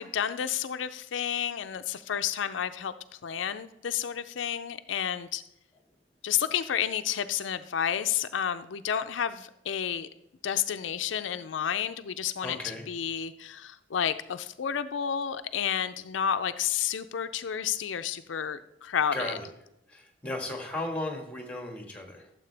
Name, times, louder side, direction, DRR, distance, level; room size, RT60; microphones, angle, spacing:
voice 1, 0.0-2.9 3.2-5.4 6.2-10.1 10.4-12.6 12.9-19.4, left 8 dB, 85° left, 11 dB, 0.4 m, -31 dB
voice 2, 12.4-12.9 19.1-19.5 19.9-22.3, left 1 dB, 5° left, 2 dB, 1.7 m, -35 dB
13.0 x 7.4 x 3.4 m, 0.83 s
head